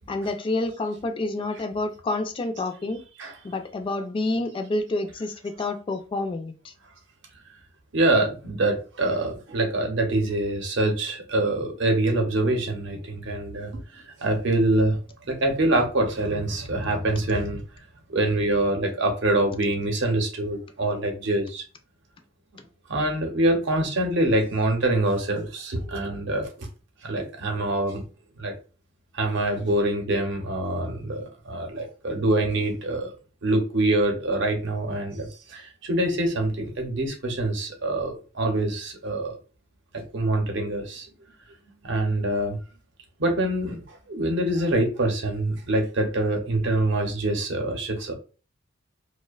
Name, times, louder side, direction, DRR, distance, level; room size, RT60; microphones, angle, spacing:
voice 1, 0.1-3.0 3.4-6.7, left 2 dB, 25° left, 0.3 m, -28 dB
voice 2, 7.9-15.0 15.3-17.6 18.1-21.6 22.9-26.7 27.0-28.0 28.4-28.5 29.1-33.1 33.4-39.4 39.9-41.1 41.8-42.6 43.2-48.1, right 2 dB, 65° right, 0.7 m, -25 dB
2.5 x 2.1 x 2.3 m
head